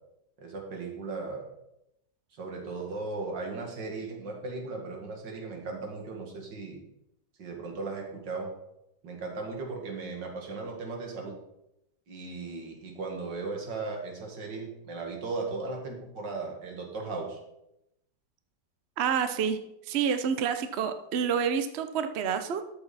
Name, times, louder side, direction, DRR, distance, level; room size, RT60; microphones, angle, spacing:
voice 1, 0.4-1.4 2.3-6.8 7.4-8.5 9.0-11.4 12.1-17.4, right 3 dB, 85° right, 1 dB, 2.7 m, -37 dB
voice 2, 19.0-19.6 19.9-22.6, right 7 dB, 50° right, 9 dB, 0.8 m, -28 dB
13.0 x 6.9 x 4.2 m, 0.85 s
omnidirectional pair, 1.9 m